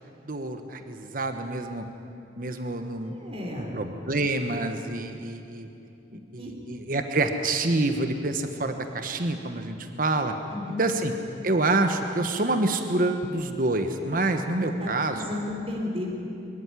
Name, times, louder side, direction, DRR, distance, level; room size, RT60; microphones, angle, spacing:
voice 1, 0.3-1.8 2.4-5.7 6.1-10.3 10.8-11.1 11.4-15.3, right 2 dB, 50° right, 7 dB, 1.2 m, -27 dB
voice 2, 3.0-3.7 6.4-6.5 10.5-10.8 14.6-16.1, left 1 dB, 35° right, 1 dB, 3.7 m, -34 dB
23.5 x 14.0 x 9.9 m, 2.7 s
head